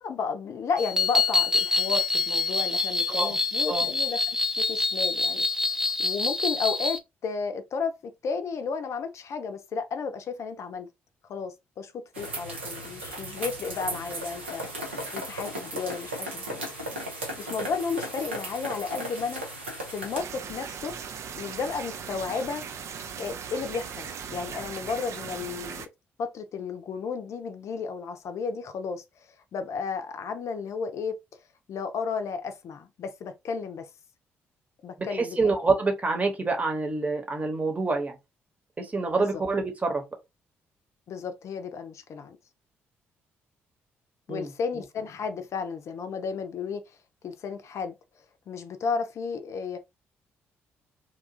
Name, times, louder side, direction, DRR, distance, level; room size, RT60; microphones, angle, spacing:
voice 1, 0.0-4.3 4.6-5.5 6.0-10.9 11.3-11.9 12.2-17.0 17.4-19.4 19.9-20.9 21.4-22.6 23.2-25.9 26.2-29.0 29.5-31.2 31.7-33.9 34.8-35.5 39.2-39.4 41.1-42.4 44.3-47.0 47.2-47.9 48.5-49.8, left 5 dB, 50° left, 0.5 m, -33 dB
sound 1, 0.8-7.0, left 3 dB, 5° right, 0.7 m, -26 dB
sound 2, 12.1-20.2, right 1 dB, 85° right, 0.7 m, -36 dB
sound 3, 20.1-25.9, right 7 dB, 50° right, 0.4 m, -38 dB
voice 2, 35.0-38.1 38.8-40.0 44.3-44.5, right 3 dB, 25° right, 1.0 m, -27 dB
2.9 x 2.4 x 2.6 m
figure-of-eight pair, 45°, 6 cm